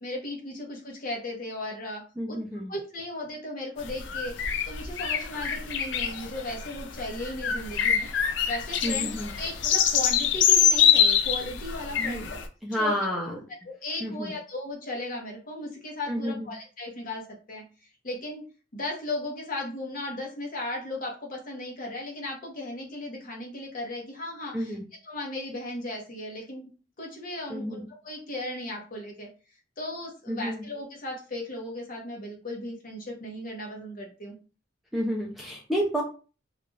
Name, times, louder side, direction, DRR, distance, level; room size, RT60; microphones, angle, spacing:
voice 1, 0.0-2.0 2.3-2.4 2.7-4.4 4.7-8.1 8.5-9.1 9.4-12.4 12.8-13.1 13.7-17.2 17.5-17.6 18.0-18.4 18.7-24.8 25.0-26.7 27.0-29.3 29.8-34.4, left 1 dB, 45° left, -1 dB, 0.8 m, -36 dB
voice 2, 2.2-2.7 8.8-9.3 12.0-12.3 12.6-13.4 14.0-14.3 16.1-16.5 24.5-24.8 27.5-27.8 30.3-30.7 34.9-36.0, equal, ahead, -2 dB, 0.4 m, -30 dB
sound 1, 3.8-12.4, left 8 dB, 65° left, 0.4 m, -25 dB
2.4 x 2.2 x 3.1 m, 0.35 s
head